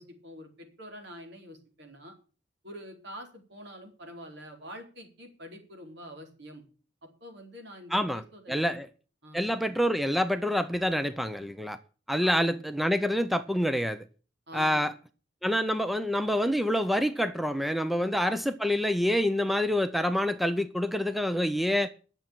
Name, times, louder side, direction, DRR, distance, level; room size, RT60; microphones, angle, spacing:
voice 1, 0.0-2.1 2.6-6.6 7.2-8.8 9.2-9.5 12.2-12.6 14.5-14.9 17.9-18.2, equal, 65° right, 4.3 m, -46 dB
voice 2, 7.9-8.2 8.5-8.9 9.3-11.8 12.1-14.0 14.5-14.9 15.4-21.9, equal, ahead, 0.7 m, -27 dB
11.0 x 7.6 x 8.8 m
head